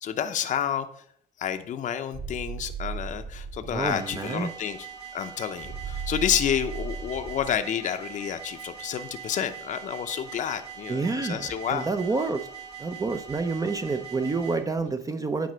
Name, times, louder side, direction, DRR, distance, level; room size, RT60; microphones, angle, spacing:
voice 1, 0.0-0.9 1.4-4.9 5.1-11.9, left 9 dB, 45° left, 8 dB, 0.7 m, -29 dB
sound 1, 2.1-4.0 5.6-7.6, right 5 dB, 55° right, 4.2 m, -36 dB
voice 2, 3.7-4.5 10.9-12.5 12.8-15.5, right 3 dB, 20° right, 8 dB, 0.6 m, -28 dB
sound 2, 3.8-14.6, right 7 dB, 35° right, 3.4 m, -42 dB
9.4 x 4.2 x 6.1 m, 0.67 s
cardioid pair, 110°, 17 cm